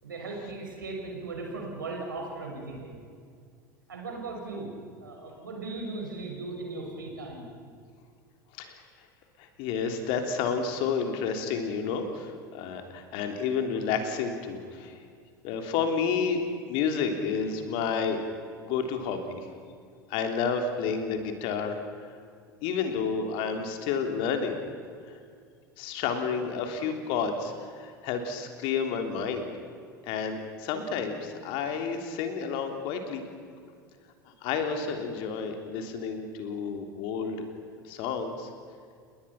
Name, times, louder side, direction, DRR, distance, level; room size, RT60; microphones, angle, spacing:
voice 1, 0.0-3.0 3.9-4.7 5.0-7.5 30.0-30.1, right 3 dB, 80° right, 0 dB, 6.1 m, -37 dB
voice 2, 9.4-15.0 15.4-16.4 16.7-18.2 18.6-19.5 20.1-22.1 22.6-24.6 25.0-25.2 25.8-29.5 30.0-33.2 34.2-37.5 37.8-38.5, left 6 dB, 55° left, 5 dB, 3.2 m, -30 dB
29.5 x 21.5 x 5.9 m, 2.2 s
figure-of-eight pair, 75°, 11 cm